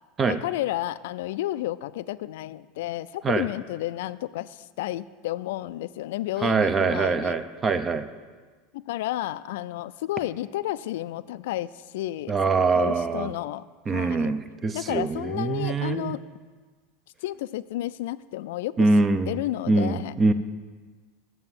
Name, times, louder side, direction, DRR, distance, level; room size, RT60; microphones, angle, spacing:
voice 1, 0.3-7.4 8.7-13.6 13.9-14.3 14.7-16.2 17.2-18.9 19.3-20.1, left 15 dB, 80° left, 16 dB, 0.3 m, -31 dB
voice 2, 6.4-8.1 12.3-13.3 13.9-16.1 18.8-19.3 19.7-20.3, right 3 dB, 25° right, 11 dB, 0.6 m, -23 dB
7.7 x 6.9 x 7.4 m, 1.4 s
supercardioid pair, 130°, 0 cm